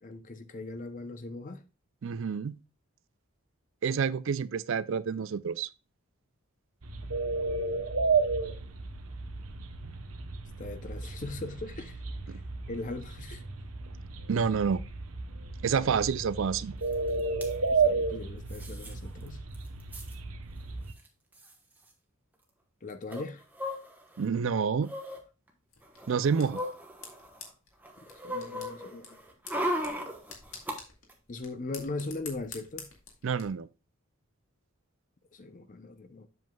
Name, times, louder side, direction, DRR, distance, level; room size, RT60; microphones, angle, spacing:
voice 1, 0.0-1.6 10.6-12.0 12.3-12.4 12.7-13.4 17.7-19.4 22.8-23.4 28.2-29.2 31.3-32.9 35.3-36.3, left 2 dB, 35° left, 0.6 m, -39 dB
voice 2, 2.0-2.6 3.8-5.7 12.3-12.4 14.3-14.8 15.6-16.7 24.2-24.9 26.1-26.6 33.2-33.7, right 6 dB, 60° right, 0.4 m, -28 dB
morning doves raw, 6.8-20.9, right 4 dB, 80° right, 0.9 m, -33 dB
sound 1, 16.9-17.0 17.2-17.5 18.5-18.9 19.3-19.4 19.5-20.1 21.0-21.1 21.3-21.5 23.1-24.2 24.8-25.2 25.8-27.5 27.8-30.8 31.1-31.2, equal, 10° right, 1.1 m, -37 dB
sound 2, 25.7-33.5, left 6 dB, 70° left, 2.1 m, -49 dB
7.7 x 7.5 x 2.3 m
head